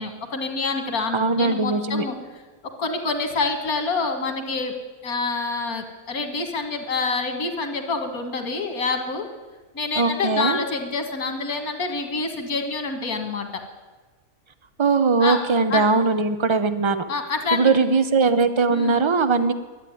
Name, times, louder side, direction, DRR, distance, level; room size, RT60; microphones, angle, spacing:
voice 1, 0.0-2.2 2.8-4.7 5.0-9.3 9.7-13.5 15.2-15.4 15.7-15.8 17.1-17.7 18.7-19.0, left 3 dB, 85° left, 5 dB, 2.2 m, -27 dB
voice 2, 1.1-2.0 9.9-10.6 14.8-17.0 17.5-19.5, right 4 dB, 35° right, 10 dB, 0.5 m, -20 dB
12.5 x 8.6 x 9.1 m, 1.3 s
omnidirectional pair, 1.5 m